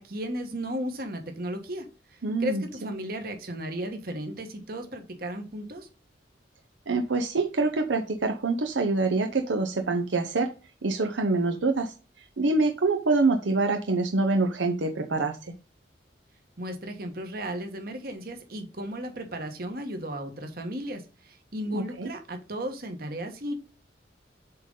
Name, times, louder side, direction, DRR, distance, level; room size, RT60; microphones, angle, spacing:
voice 1, 0.0-5.9 16.6-23.5, equal, 50° right, 5 dB, 1.4 m, -35 dB
voice 2, 2.2-2.6 6.9-10.5 10.8-11.9 12.4-15.5 21.7-22.1, right 3 dB, 80° right, 6 dB, 0.8 m, -25 dB
7.8 x 3.8 x 3.8 m, 0.33 s
head